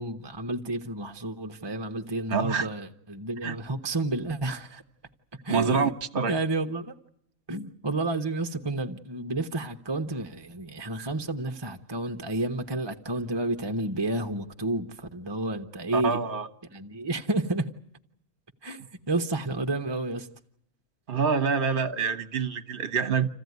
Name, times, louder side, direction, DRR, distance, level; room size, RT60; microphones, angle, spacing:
voice 1, 0.0-4.8 5.4-5.9 6.3-7.0 7.5-16.2 16.7-17.7 18.6-20.3, right 2 dB, 20° right, 0.8 m, -30 dB
voice 2, 2.3-2.7 3.4-3.5 5.5-6.3 15.9-16.5 21.1-23.3, right 5 dB, 40° right, 1.2 m, -26 dB
27.5 x 15.0 x 9.4 m
omnidirectional pair, 1.6 m